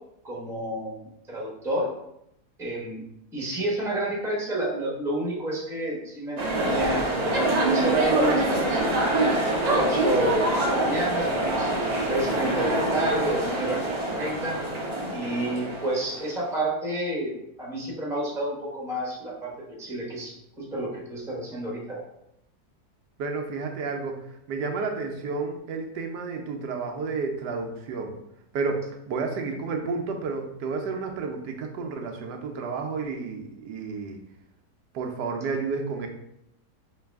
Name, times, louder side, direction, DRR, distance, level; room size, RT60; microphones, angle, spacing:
voice 1, 0.2-1.9 2.6-3.0 3.3-7.1 7.7-11.7 12.1-13.8 14.1-14.6 15.1-22.0, right 1 dB, ahead, -4 dB, 0.9 m, -30 dB
sound 1, 6.4-16.2, right 1 dB, 40° right, 0.6 m, -25 dB
voice 2, 23.2-24.2 24.5-28.1 28.5-34.2 34.9-36.1, right 4 dB, 85° right, 3 dB, 1.2 m, -31 dB
3.9 x 3.0 x 3.4 m, 0.79 s
omnidirectional pair, 1.8 m